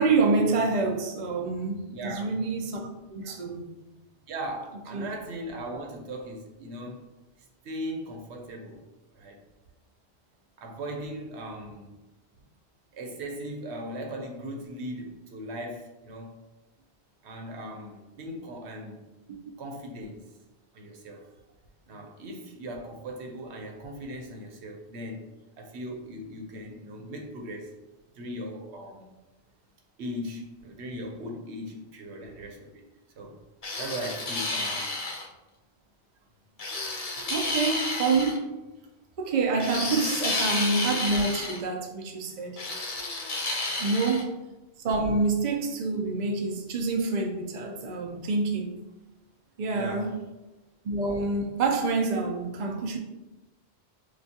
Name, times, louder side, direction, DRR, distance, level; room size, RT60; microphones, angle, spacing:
voice 1, 0.0-3.6 4.9-5.1 37.3-38.5 39.2-42.6 43.8-44.4 44.8-48.8 49.6-50.1 50.8-53.0, right 3 dB, 50° right, 2 dB, 0.7 m, -27 dB
voice 2, 1.9-2.3 4.3-7.1 7.6-8.8 9.1-9.4 10.6-12.0 12.9-16.4 17.2-19.1 19.6-20.2 20.7-21.3 21.9-25.3 25.6-27.7 28.1-29.1 30.0-32.8 33.1-33.4 33.8-35.0 43.6-43.7 49.7-50.2, right 1 dB, 85° right, 2 dB, 1.0 m, -38 dB
sound 1, 33.6-35.3 36.6-38.4 39.6-41.6 42.6-44.2, left 2 dB, 45° left, 0.6 m, -31 dB
6.6 x 2.4 x 2.8 m, 1.1 s
omnidirectional pair, 1.1 m